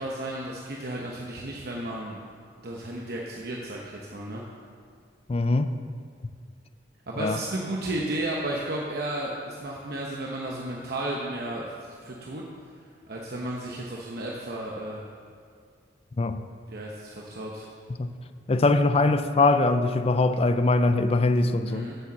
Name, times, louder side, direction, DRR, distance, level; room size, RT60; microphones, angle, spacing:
voice 1, 0.0-2.2 2.6-4.4 7.1-11.7 12.0-12.4 13.1-15.0 16.7-17.7 21.6-22.0, right 1 dB, 60° right, 1.0 m, -33 dB
voice 2, 5.3-5.7 7.2-7.4 16.2-16.4 18.0-18.1 18.5-21.9, left 2 dB, 35° left, 0.4 m, -22 dB
8.0 x 7.2 x 7.4 m
head